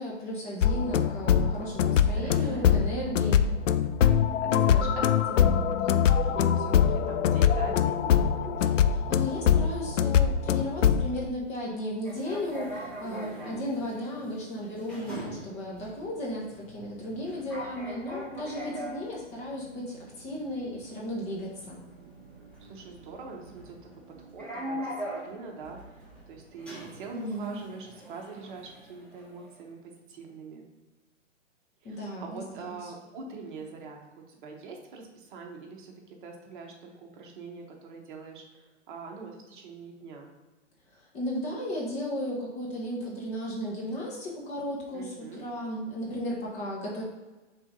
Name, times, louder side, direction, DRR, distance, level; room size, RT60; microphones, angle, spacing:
voice 1, 0.0-3.5 8.6-21.8 27.1-27.6 31.8-32.9 40.9-47.0, left 1 dB, 20° left, -3 dB, 1.1 m, -35 dB
sound 1, 0.6-11.1, left 8 dB, 85° left, 0.5 m, -23 dB
voice 2, 2.1-2.7 4.2-5.4 5.8-8.7 13.0-13.6 22.6-23.9 24.2-30.6 31.8-34.0 34.3-40.3 44.9-45.5, right 4 dB, 40° right, 1 dB, 1.2 m, -44 dB
sound 2, 12.0-29.6, right 1 dB, 5° left, 1.4 m, -42 dB
4.8 x 3.9 x 5.2 m, 1.2 s
hypercardioid pair, 145°, 37 cm